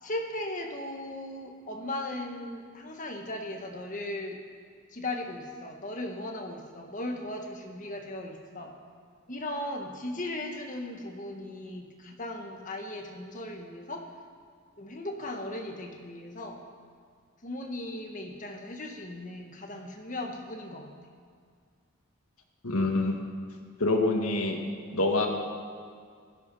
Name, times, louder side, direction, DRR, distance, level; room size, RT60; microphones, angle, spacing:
voice 1, 0.0-4.4 4.9-8.7 9.3-14.0 14.8-16.6 17.4-20.9, left 1 dB, 35° left, 2 dB, 1.7 m, -37 dB
voice 2, 22.6-23.2 23.8-24.6 24.9-25.3, left 2 dB, 90° left, 2 dB, 1.9 m, -25 dB
16.5 x 13.0 x 5.7 m, 2.1 s
head